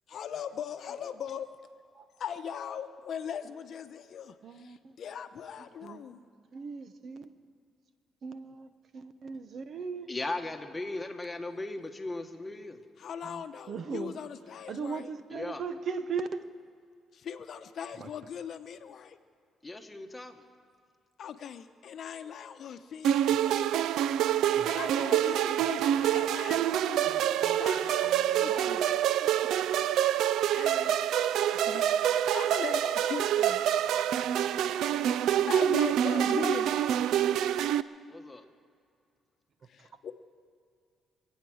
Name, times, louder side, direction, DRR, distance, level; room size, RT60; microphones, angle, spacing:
voice 1, 0.1-1.5 2.2-6.2 13.0-15.1 17.1-19.2 21.2-23.9 24.7-27.1 27.4-28.9 30.5-33.8 35.5-36.8 39.7-40.1, left 8 dB, 65° left, 9 dB, 0.8 m, -40 dB
voice 2, 4.4-4.8 5.8-6.0 6.5-7.3 8.2-8.7 8.9-10.1 13.2-13.4 13.7-14.1 14.7-16.4 18.0-18.1 24.6-24.7 27.1-27.6 27.8-27.9 28.2-28.7 29.2-29.5, right 5 dB, 55° right, 11 dB, 0.9 m, -38 dB
voice 3, 10.1-12.8 15.3-15.6 19.6-20.4 38.1-38.4, left 2 dB, 15° left, 4 dB, 1.5 m, -37 dB
sound 1, 23.0-37.8, right 10 dB, 85° right, 0.4 m, -26 dB
25.5 x 9.0 x 6.3 m, 2.3 s
cardioid pair, 90°, 0 cm